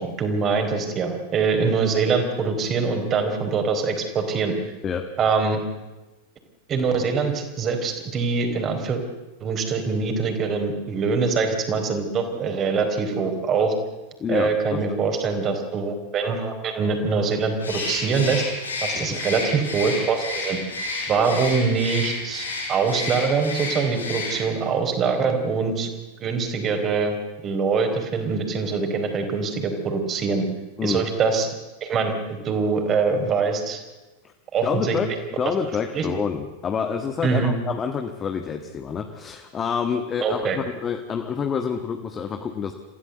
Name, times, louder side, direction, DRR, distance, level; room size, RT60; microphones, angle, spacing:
voice 1, 0.0-4.5 5.2-5.6 6.7-9.0 9.4-13.7 14.3-18.4 18.8-20.6 21.1-25.9 26.2-27.1 27.4-30.4 30.8-31.5 31.8-33.8 34.5-35.0 35.9-36.0 37.2-37.5 40.2-40.6, right 5 dB, 30° right, 5 dB, 4.3 m, -23 dB
voice 2, 14.2-15.0 18.9-19.2 30.8-31.1 34.2-34.3 34.6-42.7, left 6 dB, 25° left, 6 dB, 1.5 m, -28 dB
Bird, 17.6-24.7, left 3 dB, 75° left, 6.3 m, -31 dB
27.0 x 15.5 x 8.0 m, 1.1 s
figure-of-eight pair, 90°, 0 cm